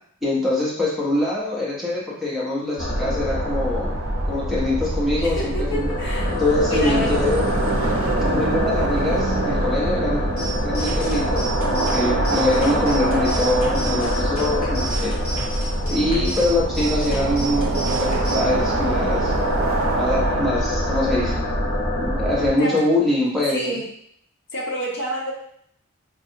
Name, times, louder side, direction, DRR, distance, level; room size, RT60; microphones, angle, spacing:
voice 1, 0.2-4.0 4.2-5.9 6.4-7.4 8.2-10.3 10.6-15.1 15.9-19.3 20.0-21.5 22.0-23.7, left 1 dB, ahead, -8 dB, 0.9 m, -24 dB
sound 1, 2.8-22.5, left 1 dB, 85° left, 0.9 m, -25 dB
sound 2, 3.3-20.5, right 4 dB, 80° right, 0.5 m, -28 dB
voice 2, 5.2-7.2 13.6-13.9 15.8-16.1 22.6-22.9 23.5-23.9 24.5-25.3, equal, 55° left, -1 dB, 0.8 m, -29 dB
sound 3, 10.4-18.4, right 3 dB, 35° left, 1.2 m, -33 dB
5.3 x 2.4 x 2.8 m, 0.70 s
head